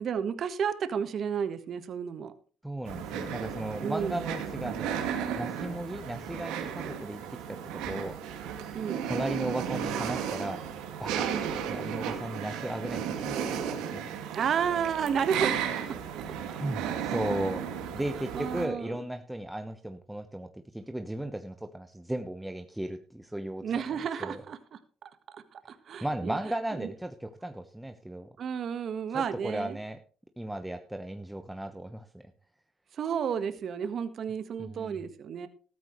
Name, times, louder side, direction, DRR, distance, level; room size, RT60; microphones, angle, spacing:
voice 1, 0.0-2.3 3.8-4.2 8.7-9.0 11.3-11.5 14.3-15.6 16.1-16.4 18.3-19.0 23.6-24.8 25.3-26.4 26.8-26.9 28.4-29.8 32.9-35.5, right 7 dB, 60° right, 11 dB, 1.5 m, -32 dB
voice 2, 2.6-5.0 5.4-8.2 9.0-10.6 11.0-14.1 16.5-17.6 17.9-23.6 24.2-24.4 26.0-28.3 29.1-30.0 30.4-32.2 34.6-35.0, right 1 dB, 5° right, 7 dB, 1.1 m, -36 dB
sound 1, 2.8-18.7, right 8 dB, 85° right, 2.2 m, -34 dB
13.5 x 13.5 x 3.2 m, 0.39 s
supercardioid pair, 70°, 0 cm